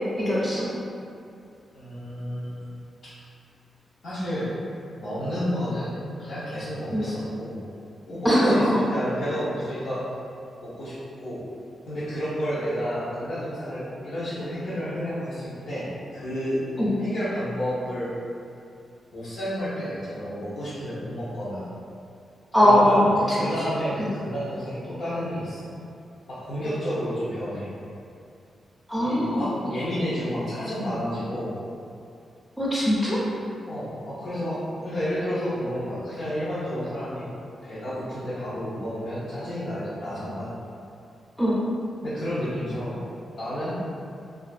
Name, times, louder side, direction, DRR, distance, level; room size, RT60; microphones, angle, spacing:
voice 1, 0.2-0.7 6.9-7.0 8.2-8.8 16.8-17.0 22.5-23.4 24.0-24.1 28.9-29.5 32.6-33.2 41.4-41.6, equal, 10° right, -10 dB, 0.6 m, -21 dB
voice 2, 1.7-2.6 3.0-3.3 4.0-4.5 5.0-7.6 8.1-10.0 10.6-11.4 11.9-16.6 17.0-18.1 19.1-21.6 22.6-23.0 23.3-25.7 26.3-27.7 29.0-31.5 33.7-37.3 37.6-40.6 42.0-43.0 43.4-43.8, equal, 85° left, -14 dB, 0.7 m, -31 dB
2.4 x 2.3 x 2.3 m, 2.5 s
cardioid pair, 55°, 0 cm